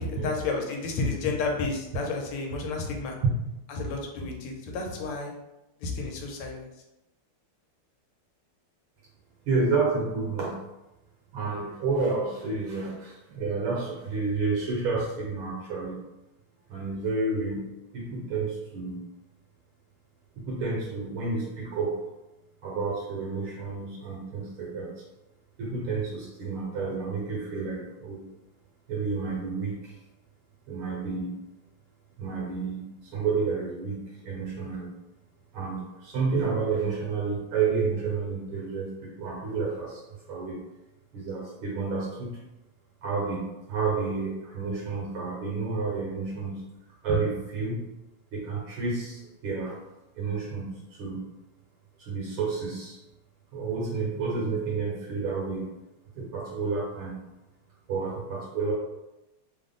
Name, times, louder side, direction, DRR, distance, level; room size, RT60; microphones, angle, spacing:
voice 1, 0.0-3.1 3.7-5.3 5.8-6.7, left 3 dB, 85° left, 1 dB, 1.6 m, -31 dB
voice 2, 9.5-10.6 11.3-16.0 16.7-17.7 17.9-19.0 20.4-22.0 22.6-25.0 25.6-28.2 28.9-29.9 30.7-31.3 32.2-34.9 35.5-40.0 40.3-40.6 41.1-42.4 43.0-46.6 47.0-47.9 48.3-49.8 50.2-51.2 52.0-53.0 53.5-55.7 56.2-57.2 57.9-58.7, right 4 dB, 75° right, -3 dB, 1.4 m, -30 dB
3.7 x 2.0 x 3.7 m, 0.95 s
omnidirectional pair, 2.4 m